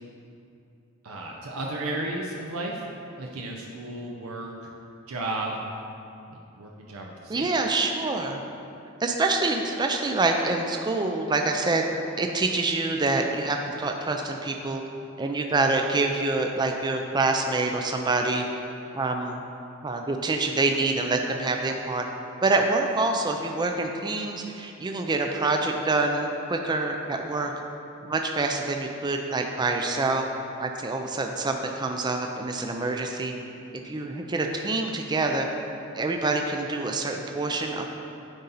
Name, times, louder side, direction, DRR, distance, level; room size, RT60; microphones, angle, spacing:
voice 1, 1.0-2.9 3.2-4.7 5.1-5.6 6.3-7.4, right 2 dB, 80° right, -1 dB, 0.7 m, -34 dB
voice 2, 7.3-8.4 9.0-11.8 12.2-14.8 15.2-18.5 18.9-19.4 19.8-22.1 22.4-27.5 28.0-30.2 30.6-33.3 33.8-35.5 35.9-37.9, right 3 dB, 20° right, 3 dB, 0.4 m, -26 dB
10.5 x 4.2 x 4.0 m, 2.7 s
head